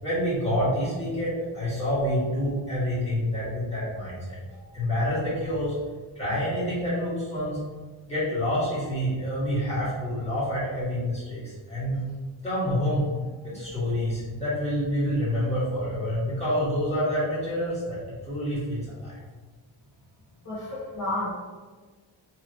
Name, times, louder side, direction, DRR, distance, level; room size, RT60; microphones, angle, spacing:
voice 1, 0.0-5.7 6.1-7.6 8.1-12.0 12.4-13.1 13.4-19.2 20.6-20.7, equal, 15° left, -11 dB, 1.5 m, -28 dB
voice 2, 20.4-21.3, left 1 dB, 40° left, -11 dB, 1.0 m, -31 dB
2.9 x 2.8 x 2.8 m, 1.4 s
wide cardioid pair, 115°, 49 cm